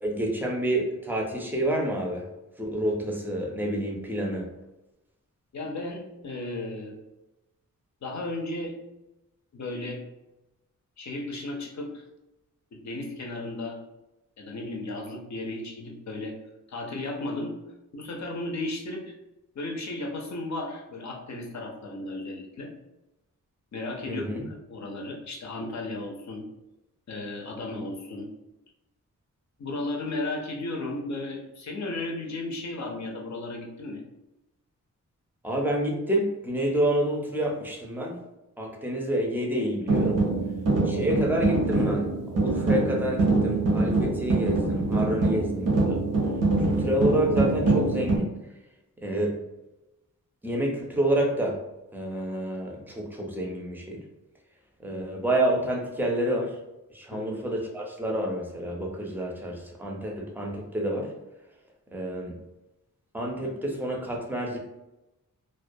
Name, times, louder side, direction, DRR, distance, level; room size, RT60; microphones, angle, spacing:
voice 1, 0.0-2.3 2.6-4.5 24.0-24.5 35.4-38.2 38.6-40.2 40.8-46.0 46.6-48.4 49.0-49.4 50.4-51.6 51.9-54.0 54.8-56.6 56.9-61.1 61.9-62.4 63.1-64.6, right 1 dB, 5° right, -1 dB, 0.5 m, -28 dB
voice 2, 5.5-7.0 8.0-8.8 9.5-10.1 11.0-12.0 12.7-13.8 14.4-16.4 16.7-17.6 17.9-19.1 19.6-22.7 23.7-24.3 24.7-26.5 27.1-28.3 29.6-34.0 57.1-57.3, left 2 dB, 60° left, 0 dB, 0.5 m, -34 dB
sound 1, 39.9-48.2, right 2 dB, 80° right, 0.7 m, -24 dB
2.2 x 2.2 x 2.6 m, 0.97 s
wide cardioid pair, 105°, 32 cm